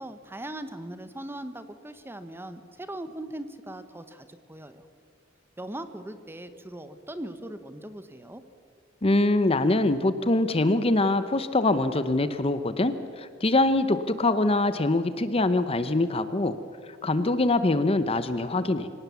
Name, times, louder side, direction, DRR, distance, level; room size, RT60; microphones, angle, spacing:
voice 1, 0.0-4.8 5.6-8.4, right 1 dB, 10° right, 10 dB, 1.0 m, -39 dB
voice 2, 9.0-16.6 17.0-18.9, left 2 dB, 30° left, 12 dB, 0.8 m, -24 dB
25.5 x 18.0 x 7.0 m, 2.1 s
head